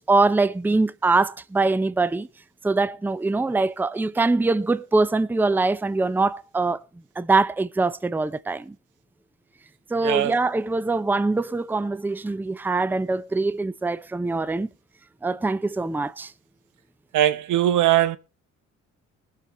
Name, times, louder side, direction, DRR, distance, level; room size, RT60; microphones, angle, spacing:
voice 1, 0.0-2.3 2.6-6.8 7.2-8.7 9.9-14.7 15.2-16.3, right 3 dB, 5° right, 0.5 m, -23 dB
voice 2, 10.0-10.3 17.1-18.2, right 12 dB, 80° right, 1.0 m, -20 dB
19.5 x 6.7 x 4.1 m
cardioid pair, 90°, 30 cm